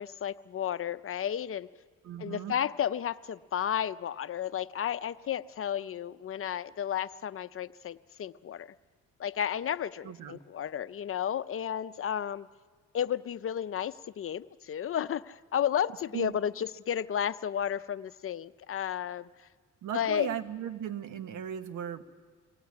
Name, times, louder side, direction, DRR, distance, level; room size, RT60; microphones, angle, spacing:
voice 1, 0.0-1.7 2.2-8.7 9.2-12.5 12.9-19.3 19.9-20.3, left 9 dB, 45° left, 14 dB, 0.6 m, -32 dB
voice 2, 2.0-2.5 10.0-10.4 16.1-16.4 19.8-22.0, right 9 dB, 85° right, 10 dB, 1.3 m, -37 dB
23.5 x 18.0 x 9.6 m, 1.5 s
cardioid pair, 90°, 30 cm